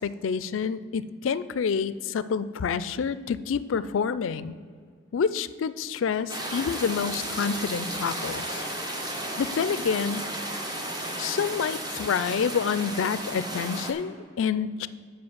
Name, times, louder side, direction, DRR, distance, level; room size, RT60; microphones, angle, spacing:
voice 1, 0.0-4.6 5.1-8.6 9.4-10.3 11.2-14.9, left 6 dB, 75° left, 16 dB, 0.4 m, -28 dB
sound 1, 6.3-13.9, right 1 dB, 20° right, 0.9 m, -33 dB
7.8 x 5.6 x 7.2 m, 2.1 s
head